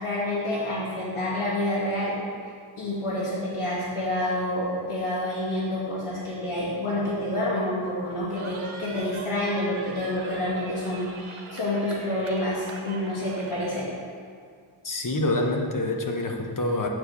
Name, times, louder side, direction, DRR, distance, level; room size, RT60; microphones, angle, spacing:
voice 1, 0.0-2.1 2.8-13.9, left 1 dB, 80° left, -7 dB, 2.2 m, -28 dB
Cheering, 8.4-13.9, right 3 dB, 75° right, 1.1 m, -43 dB
voice 2, 14.8-16.9, left 2 dB, 40° left, 2 dB, 1.1 m, -26 dB
8.5 x 4.7 x 7.0 m, 2.1 s
wide cardioid pair, 80°, 50 cm